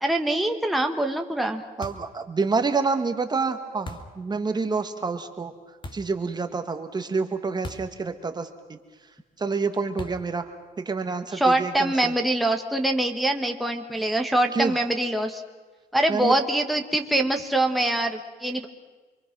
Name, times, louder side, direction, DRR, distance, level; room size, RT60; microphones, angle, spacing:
voice 1, 0.0-1.6 11.3-15.4 15.9-18.7, right 1 dB, ahead, 3 dB, 1.6 m, -24 dB
sound 1, 1.8-2.2 3.9-4.2 5.8-6.2 7.6-8.0 8.3-8.4 10.0-10.4, left 1 dB, 30° left, 2.0 m, -39 dB
voice 2, 1.8-5.5 5.9-8.8 9.4-10.5 10.8-12.1 14.5-14.7 16.1-16.3, right 4 dB, 25° right, 7 dB, 1.6 m, -28 dB
27.5 x 23.0 x 6.1 m, 1.3 s
cardioid pair, 110°, 17 cm